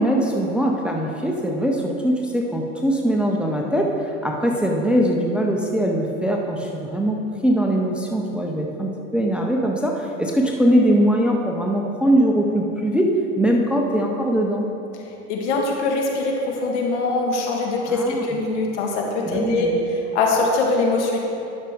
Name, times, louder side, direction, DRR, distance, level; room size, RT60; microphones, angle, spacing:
voice 1, 0.0-13.1 13.4-14.6 17.9-18.3 19.3-19.8, equal, 5° right, 0 dB, 0.7 m, -21 dB
voice 2, 15.3-19.7 20.1-21.2, left 3 dB, 65° left, 0 dB, 1.6 m, -22 dB
11.5 x 5.8 x 3.5 m, 2.8 s
hypercardioid pair, 95°, 38 cm